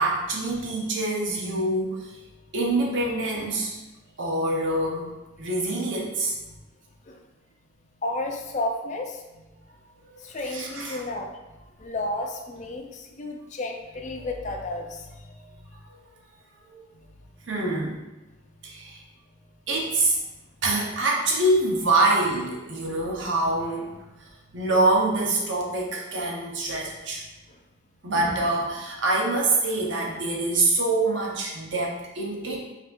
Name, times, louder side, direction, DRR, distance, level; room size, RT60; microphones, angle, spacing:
voice 1, 0.0-2.2 2.5-3.8 4.2-6.4 10.1-11.0 16.7-16.8 17.4-18.0 18.6-19.0 19.7-20.2 20.6-27.2 28.0-32.6, right 2 dB, 70° right, -2 dB, 0.9 m, -25 dB
voice 2, 8.0-9.4 10.2-11.4 11.8-15.5 27.5-27.6, left 2 dB, 35° left, 3 dB, 0.4 m, -32 dB
5.7 x 2.8 x 2.6 m, 1.1 s
head